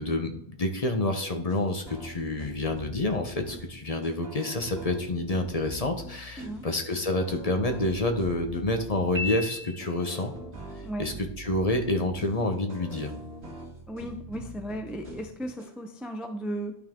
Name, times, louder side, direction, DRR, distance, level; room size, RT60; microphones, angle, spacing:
voice 1, 0.0-10.3 11.0-13.1, left 2 dB, 40° left, 5 dB, 1.0 m, -28 dB
sound 1, 1.5-15.7, right 1 dB, 80° right, 2.0 m, -43 dB
Piano, 9.1-10.3, left 3 dB, 45° right, 1.3 m, -35 dB
voice 2, 13.9-16.7, right 1 dB, ahead, 5 dB, 0.5 m, -35 dB
12.0 x 4.1 x 3.7 m, 0.71 s
omnidirectional pair, 1.1 m